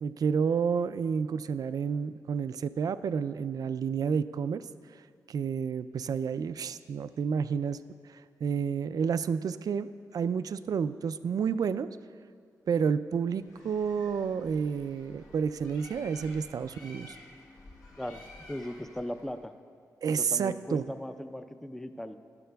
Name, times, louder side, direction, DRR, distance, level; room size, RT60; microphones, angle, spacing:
voice 1, 0.0-4.6 5.3-7.8 8.1-9.9 10.1-11.9 12.7-17.2 20.0-20.8, right 6 dB, 65° right, 13 dB, 0.3 m, -30 dB
Bird, 13.4-19.4, left 2 dB, 65° left, 1.5 m, -52 dB
voice 2, 18.5-19.5 20.1-22.2, left 1 dB, 5° left, 9 dB, 0.5 m, -38 dB
16.5 x 12.0 x 2.3 m, 2.1 s
cardioid pair, 80°, 7 cm